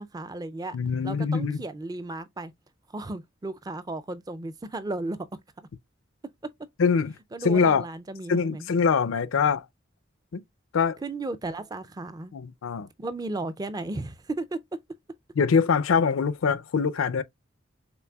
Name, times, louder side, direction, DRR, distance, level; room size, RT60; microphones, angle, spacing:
voice 1, 0.0-0.8 1.0-2.5 2.9-5.3 5.6-5.7 7.3-8.7 11.0-12.3 13.0-14.6, right 2 dB, 20° right, 0.4 m, -34 dB
voice 2, 0.7-1.6 6.8-7.1 7.4-7.9 8.3-9.7 10.3-10.4 10.7-11.0 12.3-12.9 15.4-17.2, left 5 dB, 85° left, 0.5 m, -23 dB
6.0 x 3.2 x 2.3 m
head